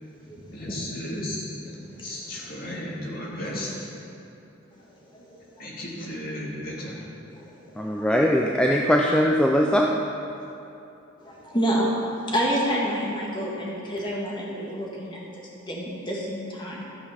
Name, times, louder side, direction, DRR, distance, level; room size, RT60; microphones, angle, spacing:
voice 1, 0.0-0.8 1.8-2.5 5.1-5.7 7.3-8.1 11.2-11.9 12.2-16.9, equal, 20° left, -4 dB, 1.7 m, -30 dB
voice 2, 0.5-1.5 1.9-4.0 5.6-6.9, left 1 dB, 45° left, -5 dB, 2.4 m, -34 dB
voice 3, 7.8-10.0, equal, 5° left, -1 dB, 0.4 m, -21 dB
14.0 x 6.0 x 5.8 m, 2.8 s
head